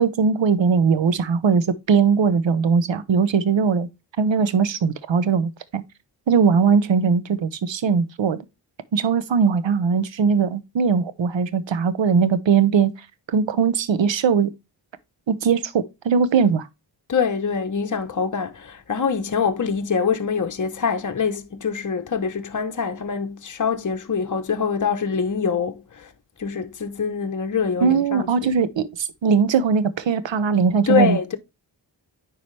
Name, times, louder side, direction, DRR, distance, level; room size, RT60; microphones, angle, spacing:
voice 1, 0.0-3.9 4.2-5.8 6.3-8.4 8.9-12.9 13.3-14.5 15.3-16.7 27.8-31.2, right 6 dB, 80° right, 0.9 m, -20 dB
voice 2, 17.1-26.1 26.4-28.5 30.9-31.4, left 6 dB, 40° left, 1.0 m, -24 dB
9.5 x 4.7 x 3.2 m
cardioid pair, 65°, 44 cm